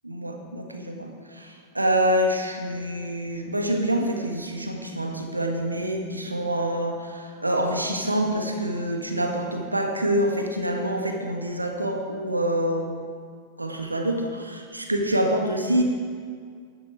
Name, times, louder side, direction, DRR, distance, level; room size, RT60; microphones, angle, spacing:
voice 1, 0.0-13.0 13.6-15.8, right 1 dB, 85° right, 3 dB, 1.4 m, -26 dB
11.5 x 11.5 x 4.6 m, 2.1 s
figure-of-eight pair, 90°, 0 cm